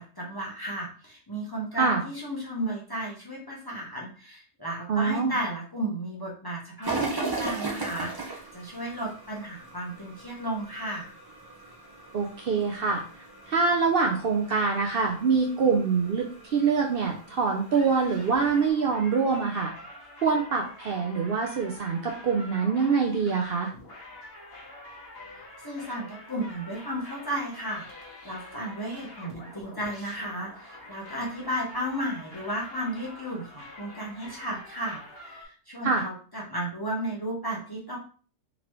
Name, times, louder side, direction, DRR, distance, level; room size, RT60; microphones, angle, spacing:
voice 1, 0.0-11.1 25.6-38.0, right 1 dB, 20° left, -3 dB, 0.8 m, -34 dB
voice 2, 4.9-5.4 12.1-13.0 13.5-19.7 20.2-23.7 35.8-36.0, right 5 dB, 60° right, 1 dB, 0.7 m, -25 dB
sound 1, 6.8-18.7, right 3 dB, 25° right, 0.7 m, -38 dB
sound 2, 17.7-35.4, left 1 dB, 50° left, 1.4 m, -46 dB
3.9 x 2.9 x 3.1 m, 0.40 s
omnidirectional pair, 1.3 m